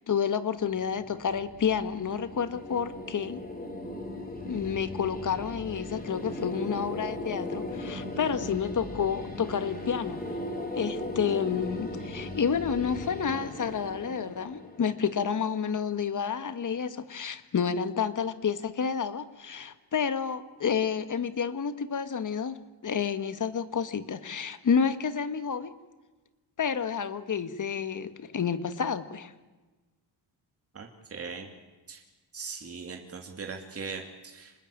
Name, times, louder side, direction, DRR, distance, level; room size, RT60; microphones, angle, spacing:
voice 1, 0.0-3.4 4.5-10.2 10.7-22.6 22.8-25.7 26.6-29.3, left 7 dB, 45° left, 12 dB, 1.7 m, -30 dB
sound 1, 0.6-15.6, left 1 dB, 20° left, 4.9 m, -38 dB
voice 2, 30.7-31.5 31.9-32.0 32.3-34.5, right 5 dB, 35° right, 2 dB, 2.9 m, -39 dB
27.0 x 20.5 x 9.0 m, 1.2 s
cardioid pair, 115°, 43 cm